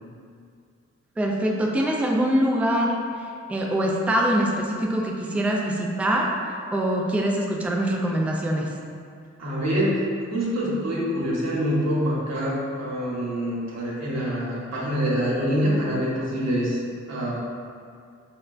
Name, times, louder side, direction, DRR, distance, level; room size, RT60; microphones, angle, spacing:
voice 1, 1.2-6.3 6.7-8.7, right 1 dB, 5° right, -1 dB, 0.3 m, -24 dB
voice 2, 9.4-10.0 10.3-16.8 17.1-17.3, equal, 60° right, -6 dB, 0.9 m, -25 dB
4.9 x 2.2 x 2.4 m, 2.3 s
wide cardioid pair, 85°, 30 cm